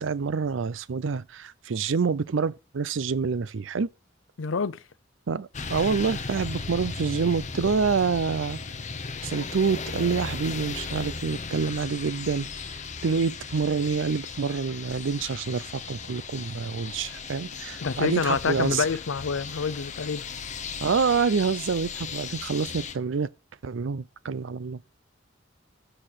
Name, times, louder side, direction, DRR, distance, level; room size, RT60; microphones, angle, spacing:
voice 1, 0.0-3.9 5.3-8.6 9.2-18.9 20.8-23.3 23.6-24.8, right 5 dB, 75° right, 0.5 m, -27 dB
voice 2, 4.4-4.8 17.8-20.3, left 5 dB, 90° left, 0.6 m, -27 dB
sound 1, 5.5-23.0, left 5 dB, 40° left, 0.9 m, -36 dB
7.7 x 4.2 x 6.5 m
head